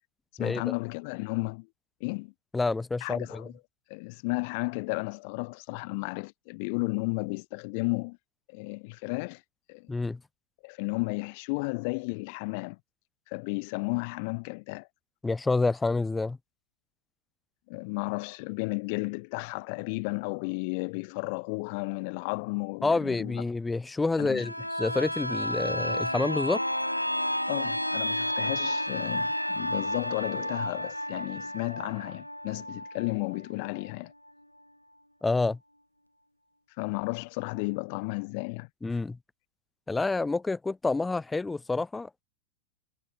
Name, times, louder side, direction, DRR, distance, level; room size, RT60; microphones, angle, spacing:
voice 1, 0.4-1.7 2.0-2.3 3.0-3.5 3.9-8.2 8.5-9.4 9.7-10.0 10.6-12.8 13.3-14.9 17.7-23.4 24.2-24.5 27.5-34.1 36.8-38.7, left 31 dB, 45° left, 2.7 m, -33 dB
voice 2, 2.5-3.5 9.9-10.2 15.2-16.4 22.8-26.6 35.2-35.6 38.8-39.2 39.9-42.2, left 3 dB, 10° left, 0.7 m, -28 dB
sound 1, 24.3-33.9 34.3-34.4, equal, 90° left, 0.5 m, -31 dB
figure-of-eight pair, 90°, 0 cm